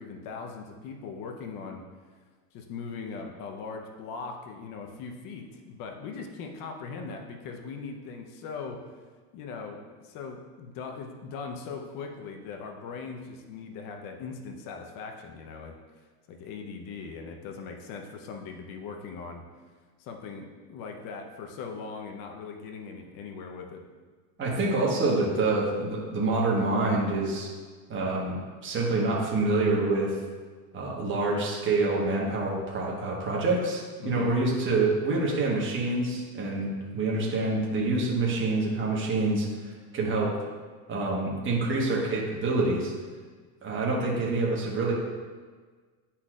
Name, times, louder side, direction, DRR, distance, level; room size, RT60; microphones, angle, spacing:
voice 1, 0.0-1.8 2.5-8.8 9.3-19.4 20.0-23.8 34.0-34.3, left 5 dB, 45° left, 2 dB, 0.8 m, -40 dB
voice 2, 24.4-27.5 27.9-28.4 28.6-30.2 30.7-39.5 39.9-40.3 40.9-42.9 43.6-44.9, right 2 dB, 25° right, -3 dB, 1.3 m, -26 dB
9.6 x 4.2 x 2.4 m, 1.5 s
supercardioid pair, 125°, 46 cm